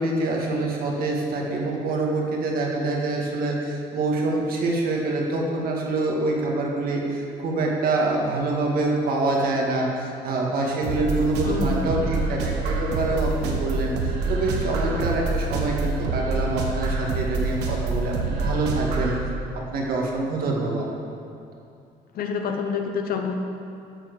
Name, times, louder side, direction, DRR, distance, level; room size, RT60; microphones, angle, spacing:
voice 1, 0.0-19.1 19.7-20.9, right 2 dB, 60° right, -1 dB, 2.0 m, -25 dB
sound 1, 10.8-19.2, right 3 dB, 90° right, 1.4 m, -26 dB
voice 2, 11.4-11.9 22.1-23.4, left 6 dB, 60° left, 4 dB, 1.0 m, -27 dB
13.0 x 4.5 x 6.9 m, 2.6 s
cardioid pair, 110°, 17 cm